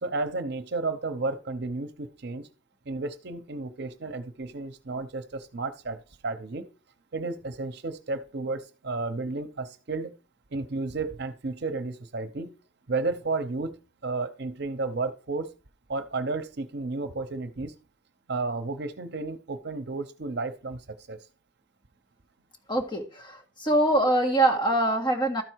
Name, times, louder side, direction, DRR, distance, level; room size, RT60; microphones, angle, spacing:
voice 1, 0.0-2.5 2.9-6.0 6.2-6.7 7.1-10.1 10.5-12.5 12.9-13.7 14.0-15.5 15.9-17.7 18.3-21.2, right 3 dB, 60° right, 0.8 m, -32 dB
voice 2, 22.7-25.4, right 1 dB, 25° left, 1.6 m, -24 dB
13.0 x 4.5 x 4.6 m
head